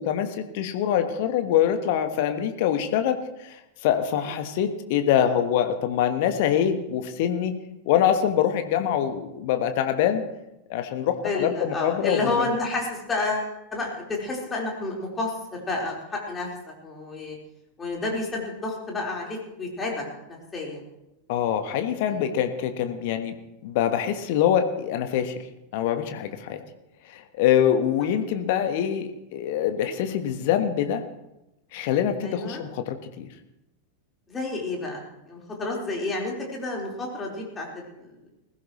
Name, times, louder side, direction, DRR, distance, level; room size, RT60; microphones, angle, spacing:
voice 1, 0.0-7.5 7.9-10.2 10.7-12.5 21.3-23.3 23.6-25.5 25.7-26.6 27.1-31.0 31.7-33.3, left 9 dB, 50° left, 8 dB, 1.4 m, -24 dB
voice 2, 11.2-17.4 17.8-20.8 21.7-21.8 22.1-22.3 32.2-32.6 34.3-38.1, left 2 dB, 20° left, -2 dB, 4.4 m, -30 dB
21.0 x 15.5 x 3.2 m, 0.93 s
figure-of-eight pair, 90°, 0 cm